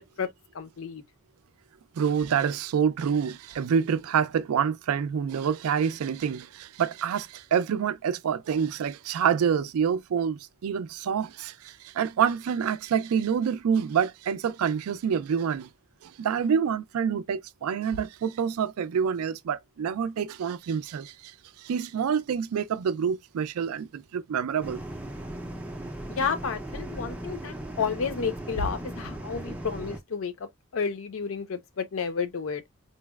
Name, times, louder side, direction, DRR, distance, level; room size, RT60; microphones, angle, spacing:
voice 1, 0.5-1.0 26.1-30.5 30.7-32.6, left 5 dB, 70° left, 0.5 m, -31 dB
voice 2, 2.0-15.7 16.0-24.8, right 7 dB, 85° right, 0.3 m, -27 dB
sound 1, 24.6-30.0, right 1 dB, 5° right, 0.3 m, -37 dB
3.9 x 2.0 x 2.2 m
head